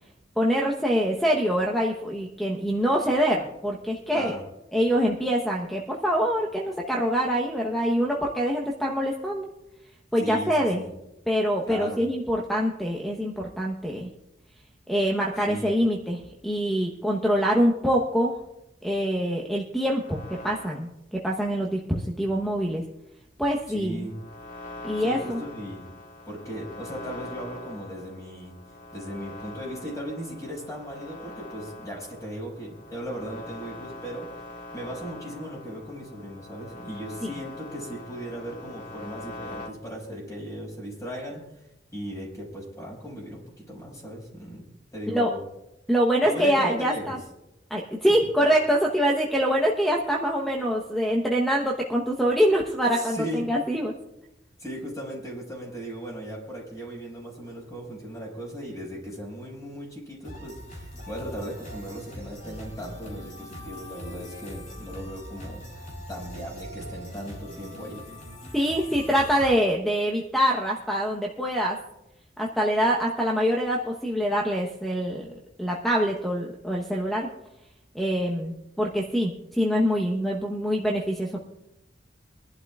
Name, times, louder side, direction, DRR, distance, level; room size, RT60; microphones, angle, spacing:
voice 1, 0.4-4.3 4.7-9.5 10.1-10.8 11.3-14.1 14.9-18.3 18.8-22.8 23.4-24.1 24.8-25.4 37.2-37.3 45.1-45.3 45.9-47.2 47.7-53.9 68.5-71.8 72.4-75.2 75.6-77.3 77.9-81.4, equal, ahead, -1 dB, 1.0 m, -25 dB
voice 2, 4.1-4.4 10.2-10.9 11.7-12.0 15.5-15.7 23.7-24.1 25.0-25.8 26.2-28.5 28.9-34.4 34.7-41.4 41.9-44.6 44.9-45.4 46.2-47.2 52.9-53.4 54.6-68.0, equal, 20° left, -3 dB, 5.8 m, -37 dB
sound 1, 20.0-20.9 23.9-39.7, left 1 dB, 75° left, 2.9 m, -43 dB
sound 2, 60.2-69.5, equal, 45° left, 4.2 m, -41 dB
24.0 x 12.0 x 2.4 m, 0.90 s
head